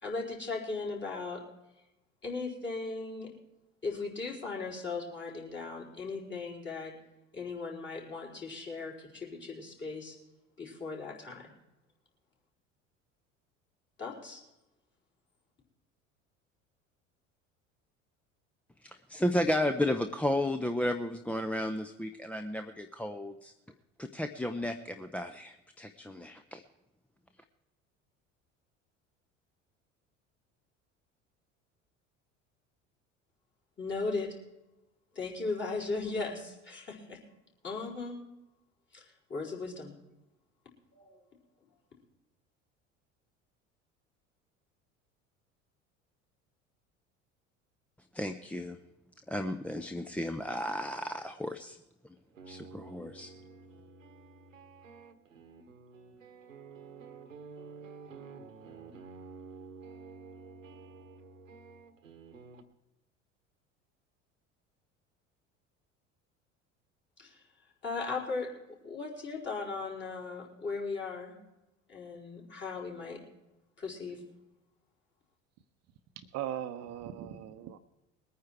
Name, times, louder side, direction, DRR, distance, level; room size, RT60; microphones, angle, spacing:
voice 1, 0.0-1.4 2.2-3.3 3.8-7.0 7.3-10.2 10.6-11.5 14.0-14.4 33.8-34.3 35.1-37.2 37.6-38.2 38.9-39.9 40.9-41.2 67.2-67.4 67.8-68.5 68.8-71.4 71.9-73.2 73.8-74.2, left 3 dB, 30° left, -2 dB, 4.6 m, -37 dB
voice 2, 18.8-23.5 24.0-26.6 48.1-48.8 49.3-51.8 52.5-53.3, left 1 dB, 5° left, 8 dB, 0.6 m, -33 dB
sound 1, 52.2-62.6, right 4 dB, 80° right, 1.1 m, -50 dB
voice 3, 76.2-77.8, right 11 dB, 40° right, 9 dB, 0.8 m, -39 dB
21.0 x 9.5 x 4.5 m, 0.96 s
figure-of-eight pair, 65°, 38 cm